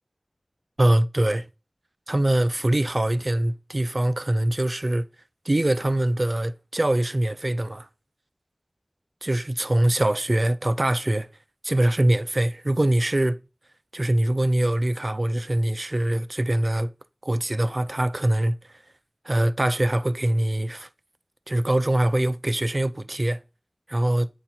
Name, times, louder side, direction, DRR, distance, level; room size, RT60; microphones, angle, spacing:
voice 1, 0.8-1.4 2.1-5.1 5.5-7.9 9.2-11.3 11.6-13.4 13.9-16.9 17.2-18.5 19.3-20.9 21.5-23.4 23.9-24.3, right 1 dB, 45° right, 0.5 m, -23 dB
8.9 x 4.2 x 4.4 m
wide cardioid pair, 55°, 0 cm